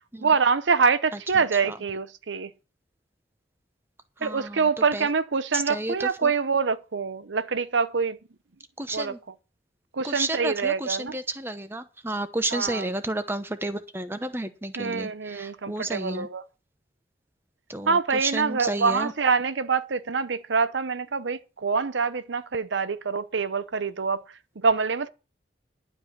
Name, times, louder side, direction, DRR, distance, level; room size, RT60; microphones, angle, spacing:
voice 1, 0.2-2.5 4.2-8.2 8.9-9.1 9.9-11.2 12.5-12.9 14.8-16.4 17.9-24.2 24.6-25.1, right 5 dB, 85° right, 0.7 m, -25 dB
voice 2, 1.3-1.8 4.2-5.1 5.5-6.3 8.8-9.2 10.0-16.3 17.7-19.1, right 2 dB, 10° right, 0.9 m, -31 dB
11.5 x 5.6 x 8.2 m
head